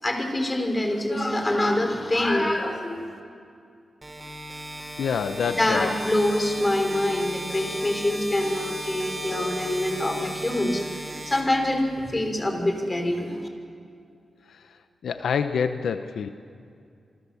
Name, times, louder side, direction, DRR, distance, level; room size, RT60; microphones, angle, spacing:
voice 1, 0.0-3.0 5.5-13.3, left 1 dB, 25° left, 4 dB, 4.6 m, -25 dB
sound 1, 4.0-12.0, right 1 dB, 20° right, 5.0 m, -36 dB
voice 2, 5.0-5.9 14.5-14.6 15.0-16.3, left 6 dB, 85° left, 8 dB, 0.9 m, -27 dB
28.5 x 23.0 x 7.2 m, 2.4 s
cardioid pair, 80°, 0 cm